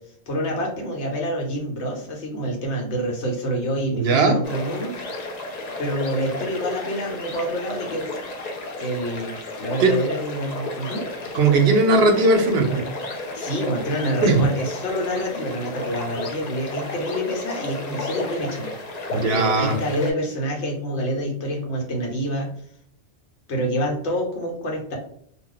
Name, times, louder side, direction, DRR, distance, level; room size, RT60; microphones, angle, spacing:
voice 1, 0.3-4.9 5.8-8.0 8.8-11.0 13.3-18.7 19.1-22.5 23.5-25.0, equal, 80° left, 0 dB, 1.1 m, -27 dB
voice 2, 3.9-4.4 9.8-9.9 11.3-12.8 14.2-14.4 19.1-19.7, right 3 dB, 70° right, 5 dB, 0.8 m, -18 dB
sound 1, 4.4-20.1, left 2 dB, 55° left, 0.4 m, -33 dB
2.4 x 2.1 x 3.7 m, 0.66 s
omnidirectional pair, 1.2 m